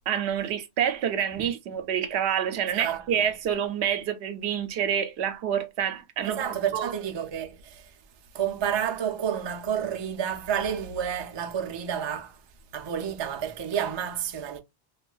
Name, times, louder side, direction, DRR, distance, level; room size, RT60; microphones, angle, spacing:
voice 1, 0.1-6.9, right 9 dB, 85° right, 0.9 m, -28 dB
voice 2, 2.7-3.2 6.3-7.9 8.3-12.4 12.7-14.6, right 8 dB, 45° right, 0.3 m, -30 dB
3.1 x 2.3 x 2.3 m
omnidirectional pair, 1.1 m